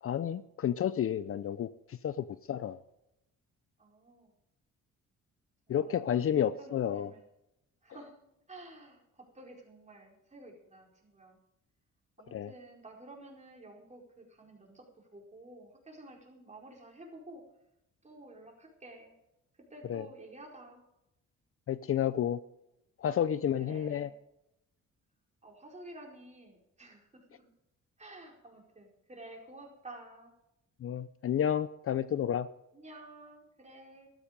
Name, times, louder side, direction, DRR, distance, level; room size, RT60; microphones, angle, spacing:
voice 1, 0.0-2.8 5.7-7.1 12.3-12.5 19.9-20.1 21.7-22.4 23.0-24.1 30.8-32.5, left 9 dB, 50° left, 15 dB, 0.6 m, -31 dB
voice 2, 3.8-4.3 5.7-6.0 6.3-7.2 7.8-8.2 8.5-11.4 12.2-17.4 18.0-19.1 19.7-20.8 23.6-24.1 25.4-27.5 28.0-30.3 32.7-34.1, right 2 dB, 25° right, -1 dB, 4.7 m, -51 dB
13.5 x 12.5 x 5.2 m, 0.85 s
cardioid pair, 90°, 30 cm